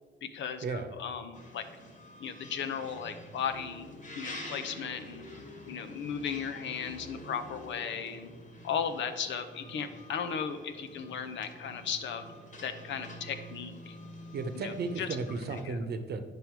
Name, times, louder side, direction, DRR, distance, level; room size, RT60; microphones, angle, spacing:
voice 1, 0.2-1.7 2.2-3.9 4.1-5.2 5.7-8.3 8.6-12.3 12.6-14.0 14.5-15.1 15.5-15.8, left 7 dB, 70° left, 8 dB, 0.8 m, -36 dB
sound 1, 1.3-15.6, equal, 40° left, 1.6 m, -47 dB
voice 2, 14.3-16.3, right 4 dB, 55° right, 8 dB, 0.9 m, -34 dB
9.0 x 5.3 x 4.6 m, 1.5 s
cardioid pair, 90°, 20 cm